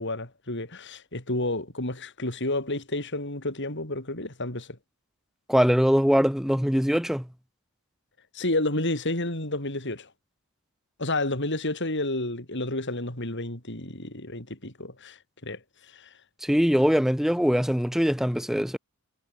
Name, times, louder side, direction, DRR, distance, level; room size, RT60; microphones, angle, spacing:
voice 1, 0.0-4.8 8.3-10.1 11.0-15.6 15.9-16.1, left 2 dB, 55° left, 6.0 m, -30 dB
voice 2, 5.5-7.3 16.4-18.8, equal, ahead, 1.1 m, -22 dB
head